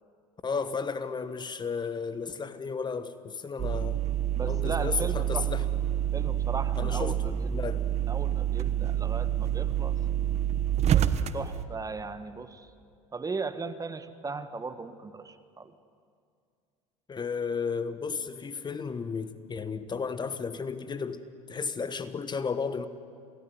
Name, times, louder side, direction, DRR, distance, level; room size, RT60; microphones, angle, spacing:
voice 1, 0.4-4.0 4.5-5.6 6.8-7.9 17.1-22.9, left 5 dB, 25° left, 12 dB, 1.5 m, -33 dB
sound 1, 3.6-11.6, right 11 dB, 40° right, 1.2 m, -28 dB
voice 2, 4.3-5.5 6.1-7.6 8.1-10.0 10.8-12.7 13.1-15.7, right 4 dB, 20° right, 11 dB, 1.4 m, -37 dB
27.5 x 18.5 x 9.7 m, 2.3 s
hypercardioid pair, 80°, 17 cm